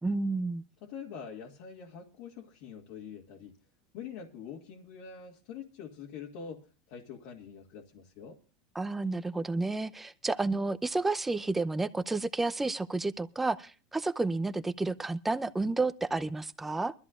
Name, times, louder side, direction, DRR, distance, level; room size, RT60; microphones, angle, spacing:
voice 1, 0.0-0.6 8.7-16.9, right 3 dB, 10° right, 0.7 m, -31 dB
voice 2, 0.8-3.6 3.9-8.4, left 7 dB, 65° left, 2.0 m, -45 dB
23.5 x 13.5 x 2.5 m
supercardioid pair, 135°, 2 cm